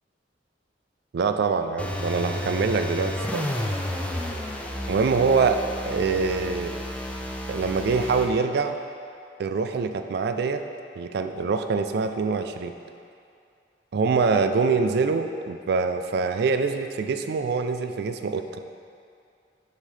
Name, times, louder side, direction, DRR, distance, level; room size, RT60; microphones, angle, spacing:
voice 1, 1.1-3.5 4.9-5.6 5.9-6.7 7.5-8.7 9.4-10.6 11.0-12.8 13.9-18.4, right 4 dB, 65° right, 7 dB, 0.3 m, -24 dB
sound 1, 1.8-8.3, left 1 dB, 5° left, 0.4 m, -31 dB
6.4 x 5.5 x 3.3 m, 2.4 s
head